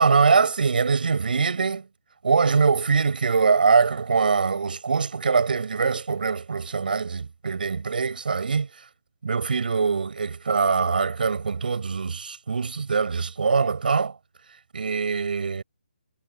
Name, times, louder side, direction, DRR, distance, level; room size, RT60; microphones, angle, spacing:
voice 1, 0.0-1.9 2.2-8.7 9.2-14.2 14.7-15.6, right 5 dB, 65° right, 5.8 m, -23 dB
figure-of-eight pair, 160°, 5 cm